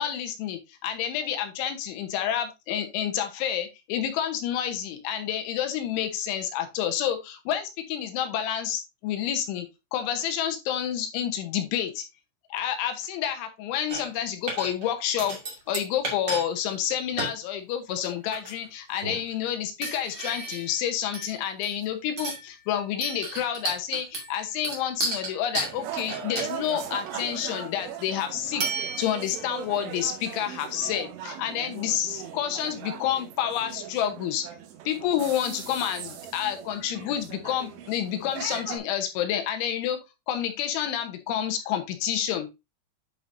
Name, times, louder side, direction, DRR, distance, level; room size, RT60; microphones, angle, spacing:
voice 1, 0.0-12.1 12.5-15.4 15.7-28.6 29.0-34.5 34.9-40.0 40.3-42.5, left 10 dB, 75° left, 7 dB, 3.2 m, -29 dB
sound 1, 13.9-14.2 14.5-14.9 15.2-16.4 16.7-16.8 17.2-17.4 18.0-18.7 19.0-19.3 19.8-20.8 21.1-21.8 22.2-22.5 23.0-27.1 28.6-29.4, right 2 dB, 55° right, 1.1 m, -33 dB
sound 2, 25.6-38.8, right 9 dB, 75° right, 3.4 m, -39 dB
11.0 x 5.0 x 2.6 m, 0.24 s
omnidirectional pair, 6.0 m